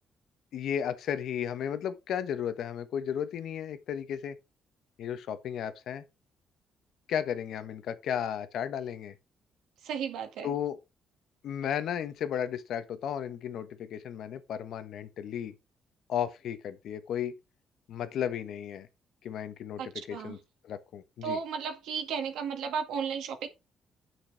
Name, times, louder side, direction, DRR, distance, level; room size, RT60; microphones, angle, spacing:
voice 1, 0.5-4.4 5.0-6.0 7.1-9.1 10.4-10.8 11.4-15.5 16.1-17.3 17.9-18.9 19.2-19.8 20.1-20.4 20.6-21.4, left 9 dB, 75° left, 1.3 m, -34 dB
voice 2, 9.8-10.5 19.8-20.4 21.2-23.5, right 6 dB, 85° right, 2.0 m, -34 dB
9.2 x 6.5 x 4.8 m
cardioid pair, 90°, 0 cm